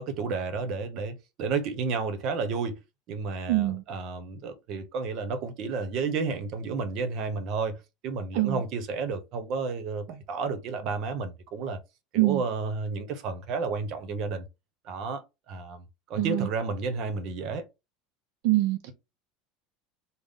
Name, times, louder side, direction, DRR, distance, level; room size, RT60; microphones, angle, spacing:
voice 1, 0.0-2.8 3.1-7.8 8.0-11.8 12.1-14.5 14.8-15.2 15.5-15.8 16.1-17.6, right 4 dB, 50° right, 0.8 m, -31 dB
voice 2, 3.5-3.8 8.3-8.6 12.2-12.4 16.2-16.5 18.4-18.9, right 17 dB, 70° right, 0.3 m, -24 dB
3.5 x 2.0 x 3.8 m
supercardioid pair, 150°, 0 cm